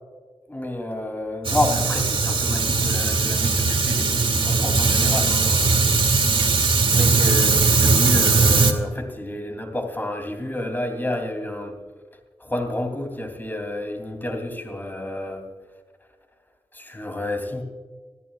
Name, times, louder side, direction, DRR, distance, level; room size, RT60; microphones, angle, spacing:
voice 1, 0.5-5.9 6.9-11.7 12.4-15.4 16.7-17.6, left 1 dB, 20° left, 4 dB, 3.1 m, -30 dB
Fire, 1.4-8.7, right 4 dB, 60° right, 1.9 m, -19 dB
26.5 x 13.5 x 2.4 m, 1.5 s
wide cardioid pair, 85°, 10 cm